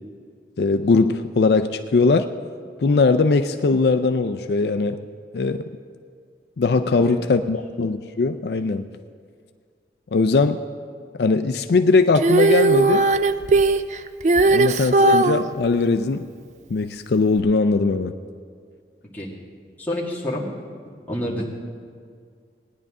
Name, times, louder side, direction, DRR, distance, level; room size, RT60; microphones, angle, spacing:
voice 1, 0.6-2.3 2.8-5.0 5.3-5.6 6.6-8.8 10.1-10.6 11.2-13.1 14.5-16.3 16.7-18.1, left 3 dB, 65° left, 8 dB, 0.4 m, -20 dB
Female singing, 12.1-15.4 17.4-17.5, right 3 dB, 40° right, 0.4 m, -17 dB
voice 2, 19.8-20.5 21.1-21.4, left 1 dB, 10° left, -6 dB, 1.9 m, -28 dB
18.5 x 10.5 x 3.7 m, 2.1 s
head